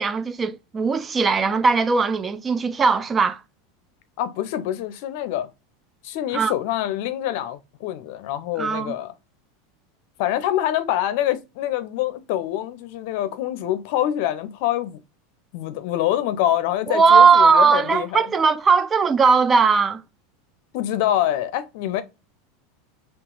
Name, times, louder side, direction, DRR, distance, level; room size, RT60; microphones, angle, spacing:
voice 1, 0.0-3.4 6.3-6.5 8.6-8.9 16.9-20.0, right 5 dB, 20° right, 0.3 m, -18 dB
voice 2, 4.2-5.5 6.0-9.1 10.2-15.0 15.5-18.3 20.7-22.0, left 12 dB, 65° left, 0.5 m, -25 dB
2.8 x 2.4 x 3.8 m
supercardioid pair, 115°, 0 cm